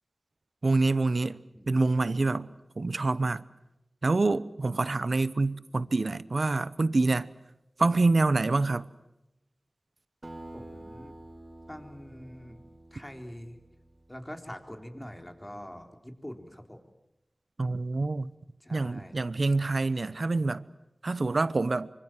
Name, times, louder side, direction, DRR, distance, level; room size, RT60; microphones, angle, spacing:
voice 1, 0.6-1.4 1.7-3.4 4.0-7.3 7.8-8.9 17.6-18.3 18.7-20.6 21.0-21.9, right 3 dB, 65° right, 0.9 m, -26 dB
Acoustic guitar, 10.2-15.1, right 1 dB, 40° right, 4.3 m, -49 dB
voice 2, 10.5-11.1 11.7-12.6 12.9-13.6 14.1-16.8 18.6-19.2, equal, 20° left, 3.8 m, -44 dB
25.5 x 25.0 x 7.6 m
wide cardioid pair, 45°, 0 cm